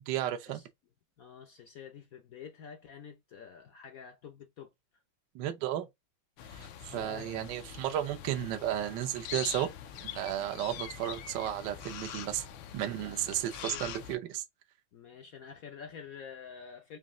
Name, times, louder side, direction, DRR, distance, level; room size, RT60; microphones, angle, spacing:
voice 1, 0.1-0.6 5.3-5.9 6.5-9.7 10.1-12.5 12.7-14.4, right 12 dB, 70° right, 1.2 m, -33 dB
voice 2, 1.2-4.7 6.9-7.3 13.3-13.9 14.9-17.0, left 7 dB, 60° left, 0.9 m, -48 dB
sound 1, 6.4-14.2, left 9 dB, 80° left, 1.4 m, -44 dB
5.2 x 2.7 x 2.5 m
omnidirectional pair, 2.2 m